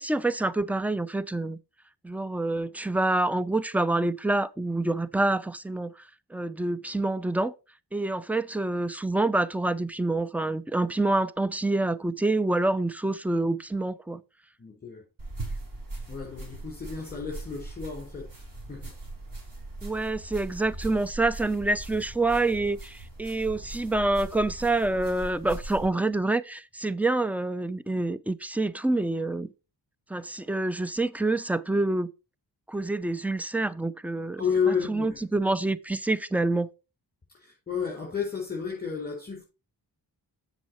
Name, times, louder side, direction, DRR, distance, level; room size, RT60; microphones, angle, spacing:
voice 1, 0.0-1.6 2.0-5.9 6.3-7.5 7.9-14.2 19.8-29.5 30.1-32.1 32.7-34.4 34.7-36.7, right 2 dB, 5° right, 0.6 m, -27 dB
voice 2, 14.6-15.0 16.1-18.3 18.7-18.9 34.4-35.2 37.3-39.4, left 6 dB, 20° left, 4.4 m, -31 dB
sound 1, 15.2-25.9, right 2 dB, 50° right, 4.3 m, -40 dB
7.6 x 6.4 x 4.5 m
cardioid pair, 65°, 43 cm